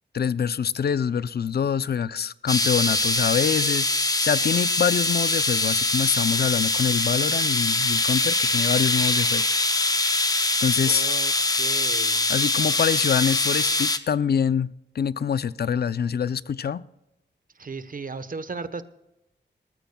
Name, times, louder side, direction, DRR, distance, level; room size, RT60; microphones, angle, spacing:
voice 1, 0.1-3.9 4.2-9.4 10.6-11.0 12.3-16.8, left 7 dB, 60° left, 0.5 m, -25 dB
sound 1, 2.5-14.0, left 2 dB, 20° left, 1.0 m, -23 dB
voice 2, 10.9-12.3 17.6-18.8, right 4 dB, 50° right, 1.1 m, -35 dB
20.0 x 14.5 x 2.3 m
wide cardioid pair, 85°, 19 cm